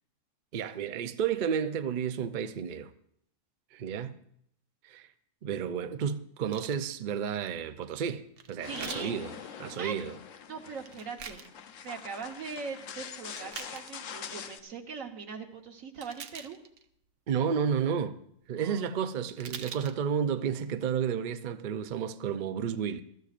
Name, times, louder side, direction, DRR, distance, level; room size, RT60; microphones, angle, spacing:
voice 1, 0.5-2.9 3.7-4.2 4.8-5.1 5.4-9.3 9.6-10.1 17.3-18.2 18.5-23.0, right 7 dB, 50° right, 0.6 m, -31 dB
sound 1, 6.5-6.8 8.4-9.1 10.8-11.5 12.0-12.4 13.2-14.0 16.0-16.9 19.0-19.1 19.3-20.0 20.5-20.6, right 7 dB, 70° right, 1.0 m, -44 dB
sound 2, 8.6-14.6, left 8 dB, 75° left, 1.1 m, -44 dB
voice 2, 8.7-9.1 9.7-10.0 10.5-11.4 11.8-16.6 18.5-19.0, right 5 dB, 85° right, 1.6 m, -41 dB
21.5 x 13.0 x 2.5 m
omnidirectional pair, 1.4 m